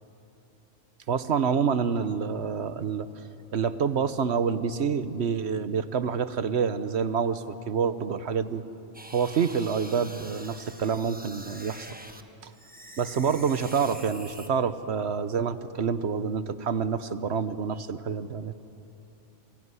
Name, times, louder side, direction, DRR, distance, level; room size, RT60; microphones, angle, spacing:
voice 1, 1.1-3.1 3.5-8.6 9.1-11.9 12.4-12.5 13.0-18.5, right 6 dB, 65° right, 12 dB, 1.2 m, -27 dB
sound 1, 8.9-12.2 12.5-14.5, right 1 dB, 10° right, 1.1 m, -45 dB
28.0 x 21.0 x 9.7 m, 2.9 s
omnidirectional pair, 1.3 m